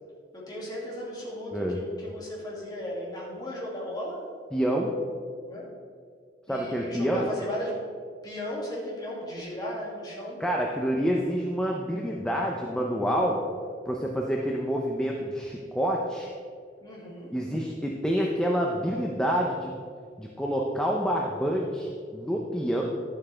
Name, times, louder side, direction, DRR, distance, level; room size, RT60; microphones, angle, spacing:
voice 1, 0.3-4.2 5.4-5.6 6.5-7.8 8.2-10.4 16.8-17.3, equal, 25° left, -5 dB, 2.4 m, -36 dB
voice 2, 4.5-4.9 6.5-7.3 10.4-13.4 13.9-16.3 17.3-19.7 20.2-22.8, equal, 5° left, -1 dB, 0.6 m, -27 dB
11.5 x 7.4 x 3.4 m, 2.1 s
head